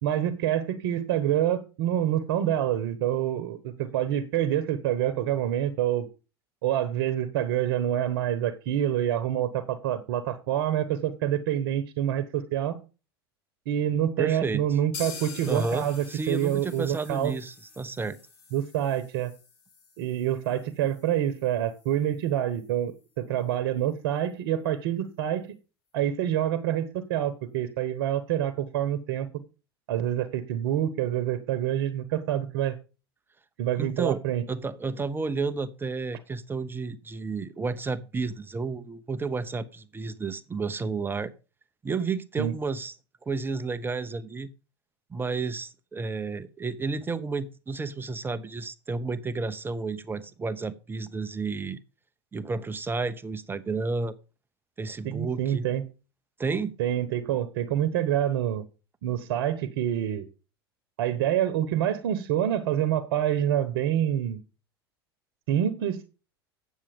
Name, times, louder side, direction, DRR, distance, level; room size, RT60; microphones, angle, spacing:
voice 1, 0.0-6.1 6.6-12.8 13.7-17.3 18.5-19.3 20.0-25.5 25.9-29.3 29.9-32.8 33.6-34.5 42.4-42.5 55.0-55.8 56.8-58.7 59.0-60.3 61.0-64.4 65.5-66.0, right 11 dB, 65° right, 1.0 m, -27 dB
voice 2, 14.2-14.6 15.5-18.2 33.8-34.2 34.5-41.3 41.8-42.9 43.2-44.5 45.1-51.8 52.3-54.2 54.8-55.7 56.4-56.7, right 4 dB, 15° right, 0.7 m, -31 dB
sound 1, 14.9-22.7 23.0-23.1 23.4-23.5 23.9-24.0, left 5 dB, 65° left, 3.3 m, -46 dB
8.8 x 7.2 x 5.1 m
hypercardioid pair, 90°, 13 cm